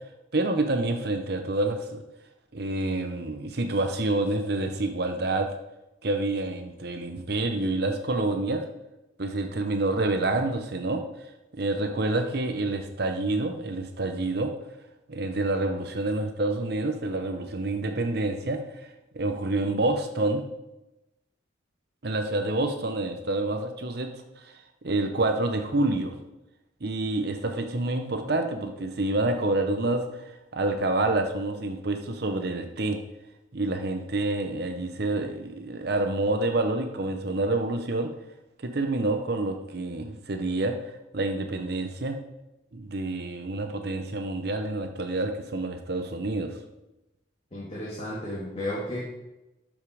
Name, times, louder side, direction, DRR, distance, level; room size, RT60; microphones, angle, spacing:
voice 1, 0.3-2.0 2.5-5.5 6.0-8.6 9.2-11.0 11.5-14.5 15.1-18.6 19.1-20.4 22.0-24.1 24.4-24.5 24.8-26.1 26.8-30.0 30.5-33.0 33.5-38.1 38.6-40.7 41.1-42.2 42.7-46.6, right 2 dB, 55° right, 5 dB, 0.9 m, -27 dB
voice 2, 47.5-49.0, left 1 dB, 30° left, -5 dB, 1.9 m, -33 dB
12.0 x 5.5 x 4.9 m, 0.97 s
head